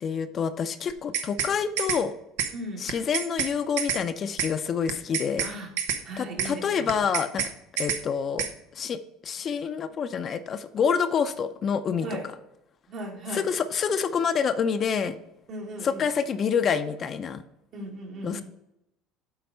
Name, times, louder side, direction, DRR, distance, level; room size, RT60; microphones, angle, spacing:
voice 1, 0.0-2.2 2.8-5.5 6.2-7.5 7.8-8.5 8.7-9.0 9.2-12.1 13.3-15.2 15.8-17.4 18.2-18.4, left 6 dB, 40° left, 10 dB, 0.5 m, -27 dB
sound 1, 0.9-1.5 1.8-2.0 2.4-2.5 2.9-3.5 3.8-4.0 4.4-4.5 4.9-5.5 5.8-6.0 6.4-6.5 6.9-7.5 7.8-8.0 8.4-8.5, right 7 dB, 85° right, 0.7 m, -28 dB
voice 2, 2.5-2.9 5.4-5.7 6.0-7.0 12.0-12.3 12.9-13.5 15.5-16.1 17.7-18.4, right 1 dB, 55° right, 1 dB, 1.8 m, -37 dB
7.8 x 4.1 x 5.5 m, 0.84 s
supercardioid pair, 90°, 0 cm